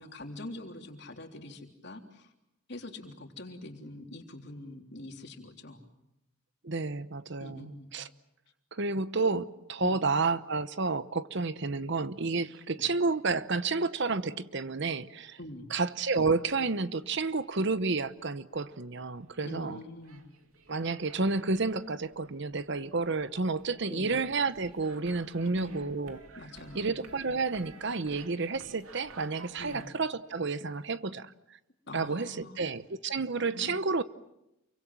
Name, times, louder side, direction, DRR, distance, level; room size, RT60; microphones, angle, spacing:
voice 1, 0.0-2.3 2.7-5.9 7.4-8.0 9.8-10.1 12.8-12.9 15.4-15.7 19.4-20.2 23.9-24.2 25.4-25.9 26.3-26.9 29.6-29.9 31.9-32.6 33.5-33.7, left 1 dB, 50° left, 3.5 m, -44 dB
voice 2, 6.6-8.1 8.7-15.4 15.7-19.8 20.7-26.2 26.7-31.3 31.9-34.0, right 3 dB, 55° right, 0.9 m, -30 dB
sound 1, 16.8-17.8 18.0-29.9, right 3 dB, 85° right, 2.8 m, -55 dB
28.5 x 24.0 x 7.5 m
head